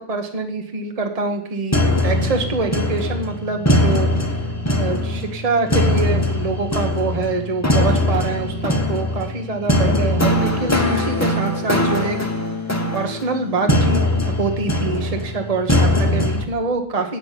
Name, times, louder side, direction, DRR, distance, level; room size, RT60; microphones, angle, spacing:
voice 1, 0.0-4.1 4.7-12.2 12.9-17.2, right 3 dB, 30° right, 5 dB, 1.2 m, -25 dB
sound 1, 1.7-16.5, left 1 dB, 15° left, 1.0 m, -21 dB
8.7 x 6.1 x 8.2 m, 0.64 s
omnidirectional pair, 1.2 m